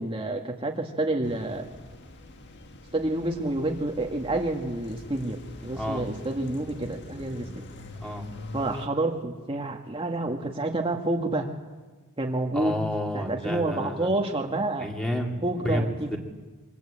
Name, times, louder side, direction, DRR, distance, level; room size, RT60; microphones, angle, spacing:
voice 1, 0.0-1.7 2.9-7.5 8.5-11.5 12.2-12.8 13.1-14.9 15.4-16.2, right 2 dB, 25° right, 1 dB, 1.8 m, -28 dB
sound 1, 1.2-8.9, left 1 dB, 55° left, 1.9 m, -44 dB
voice 2, 5.8-6.1 8.0-8.3 12.5-14.1 14.8-16.2, left 1 dB, 5° left, 1 dB, 2.8 m, -30 dB
26.5 x 24.5 x 8.8 m, 1.3 s
head